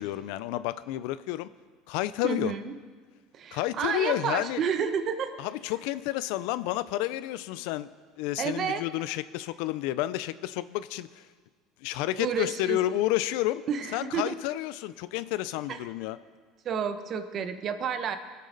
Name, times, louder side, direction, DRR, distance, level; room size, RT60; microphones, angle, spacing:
voice 1, 0.0-1.5 1.9-2.5 3.5-4.6 5.4-7.9 8.2-11.3 11.8-13.6 13.9-16.2, left 15 dB, 75° left, 16 dB, 0.4 m, -30 dB
voice 2, 2.2-2.7 3.3-5.3 8.4-8.8 12.2-12.8 13.7-14.3 15.7-15.8 16.6-18.2, right 7 dB, 40° right, 9 dB, 0.9 m, -30 dB
23.0 x 8.3 x 3.9 m, 1.5 s
cardioid pair, 135°, 0 cm